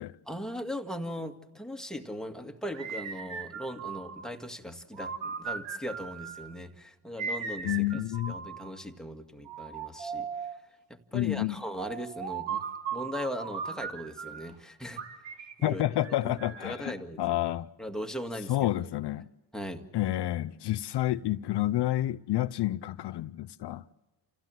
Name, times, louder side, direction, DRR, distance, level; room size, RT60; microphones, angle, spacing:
voice 1, 0.3-8.0 8.3-10.6 10.9-12.7 12.9-15.3 15.6-15.8 16.2-17.5 17.8-18.9 19.5-19.8, equal, ahead, 2.0 m, -39 dB
sound 1, 2.7-4.3 4.9-6.5 7.2-8.8 9.5-10.7 11.8-14.5 15.0-16.8, right 6 dB, 65° right, 2.0 m, -38 dB
voice 2, 7.6-8.3 11.1-11.6 15.6-17.7 18.5-19.3 19.9-23.8, left 14 dB, 60° left, 0.7 m, -29 dB
28.5 x 16.0 x 7.6 m
supercardioid pair, 75°, 47 cm